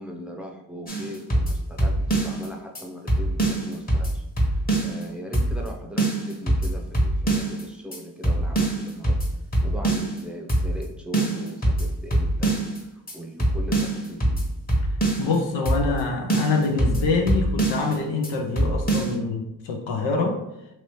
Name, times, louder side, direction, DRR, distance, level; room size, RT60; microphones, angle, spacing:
voice 1, 0.0-4.2 4.8-9.2 9.6-12.7 12.9-14.4, equal, ahead, 0 dB, 0.6 m, -39 dB
sound 1, 0.9-2.5 2.8-2.9 3.1-5.0 5.3-5.7 6.0-7.6 7.9-8.0 8.2-10.2 10.5-10.9 11.1-12.8 13.1-13.2 13.4-15.4 15.7-16.0 16.3-18.0 18.2-18.3 18.6-19.1, right 1 dB, 20° left, 1.1 m, -24 dB
voice 2, 15.2-20.4, left 4 dB, 90° left, 2 dB, 0.7 m, -25 dB
3.0 x 2.8 x 3.1 m, 0.88 s
supercardioid pair, 60°, 43 cm